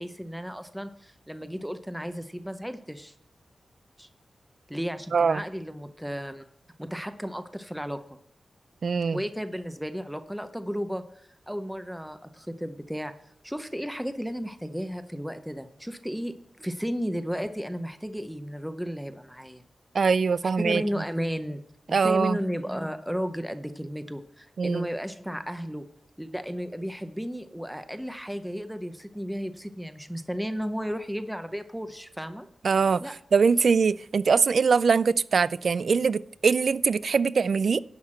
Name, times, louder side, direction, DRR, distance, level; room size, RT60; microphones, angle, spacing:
voice 1, 0.0-3.1 4.0-4.1 4.7-6.4 6.8-8.0 9.1-13.1 13.4-19.6 20.6-21.6 21.9-25.8 26.2-32.5 33.0-33.1, equal, ahead, 0.7 m, -34 dB
voice 2, 5.1-5.4 8.8-9.2 19.9-20.8 21.9-22.4 24.6-24.9 32.6-37.8, right 5 dB, 65° right, 0.3 m, -23 dB
11.0 x 5.8 x 7.5 m
wide cardioid pair, 85°, 0 cm